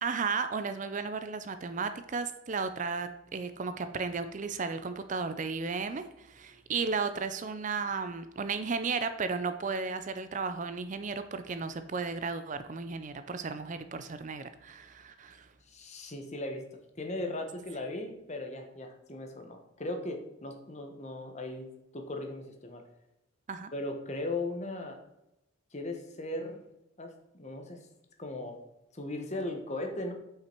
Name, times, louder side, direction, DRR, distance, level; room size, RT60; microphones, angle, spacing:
voice 1, 0.0-15.5 23.5-23.7, right 4 dB, 35° right, 10 dB, 0.4 m, -34 dB
voice 2, 15.7-16.6 16.9-21.7 21.9-22.8 23.7-25.0 25.7-26.6 27.0-27.8 28.2-28.6 28.9-30.1, left 2 dB, 35° left, 4 dB, 1.1 m, -37 dB
8.3 x 5.7 x 4.5 m, 0.89 s
head